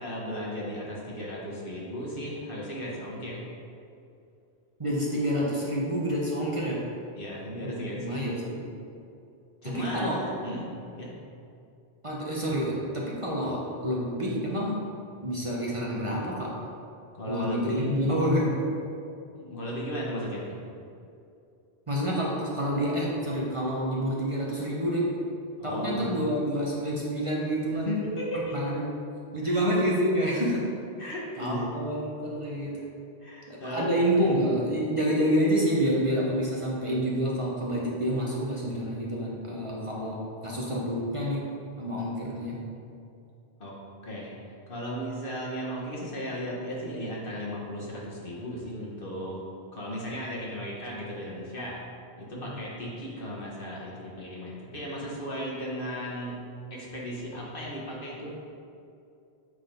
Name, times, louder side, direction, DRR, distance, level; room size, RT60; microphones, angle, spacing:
voice 1, 0.0-3.4 7.2-8.6 9.6-10.7 10.9-11.1 17.1-18.3 19.3-20.6 25.6-26.1 27.7-28.6 29.4-29.6 31.0-31.7 33.2-34.3 43.6-43.7 44.0-44.3 44.7-49.4 49.7-51.8 52.2-56.4 56.7-58.3, equal, 55° left, -4 dB, 1.6 m, -35 dB
voice 2, 4.8-6.8 7.6-8.6 9.7-10.2 12.0-14.7 15.2-16.5 17.3-18.5 21.9-25.1 25.6-27.9 28.3-28.9 29.3-30.6 31.4-32.8 33.5-41.4 41.8-42.6 52.3-52.5, equal, 30° right, -5 dB, 1.1 m, -28 dB
7.9 x 4.0 x 5.2 m, 2.6 s
omnidirectional pair, 1.1 m